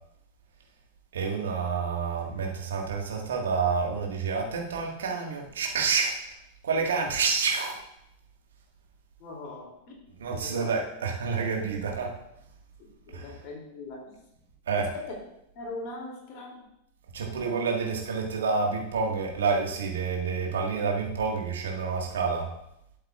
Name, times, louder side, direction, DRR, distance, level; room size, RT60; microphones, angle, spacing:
voice 1, 1.1-6.1 6.6-7.8 10.2-12.1 13.1-13.4 14.7-14.9 17.1-22.5, right 5 dB, 65° right, 1 dB, 1.6 m, -28 dB
voice 2, 9.2-9.9 10.3-10.7 13.1-14.1 14.8-15.1 15.5-16.6 17.2-17.4, left 2 dB, 40° left, -1 dB, 2.7 m, -41 dB
12.0 x 7.7 x 2.4 m, 0.81 s
figure-of-eight pair, 90°, 0 cm